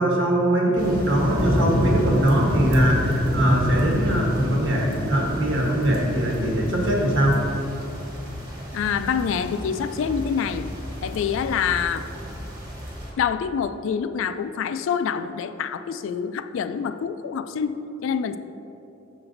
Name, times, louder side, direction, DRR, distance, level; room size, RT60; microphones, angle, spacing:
voice 1, 0.0-7.3, right 1 dB, 65° right, -2 dB, 1.3 m, -22 dB
sound 1, 0.8-13.1, equal, 20° right, 1.3 m, -28 dB
voice 2, 8.7-10.7 11.0-12.1 13.2-18.4, left 7 dB, 65° left, 12 dB, 0.3 m, -26 dB
6.7 x 5.8 x 3.9 m, 2.9 s
head